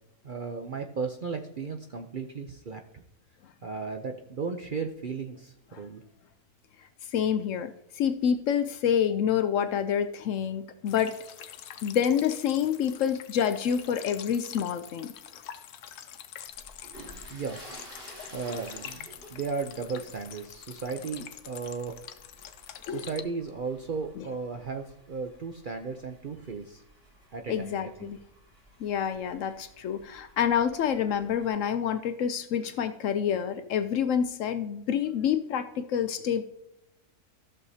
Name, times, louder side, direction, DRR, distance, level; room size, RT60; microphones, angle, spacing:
voice 1, 0.2-3.0 3.6-6.0 17.3-17.9 18.3-22.0 22.8-26.8 27.3-28.1, right 5 dB, 65° right, 5 dB, 0.5 m, -35 dB
voice 2, 7.1-11.1 11.8-15.1 22.9-23.0 24.2-24.3 27.5-28.2 28.8-36.4, left 8 dB, 70° left, 10 dB, 0.8 m, -27 dB
sound 1, 10.9-23.2, left 10 dB, 85° left, 1.2 m, -45 dB
sound 2, 16.5-31.5, right 1 dB, 35° right, 3.9 m, -53 dB
14.5 x 6.6 x 2.7 m, 0.83 s
omnidirectional pair, 1.6 m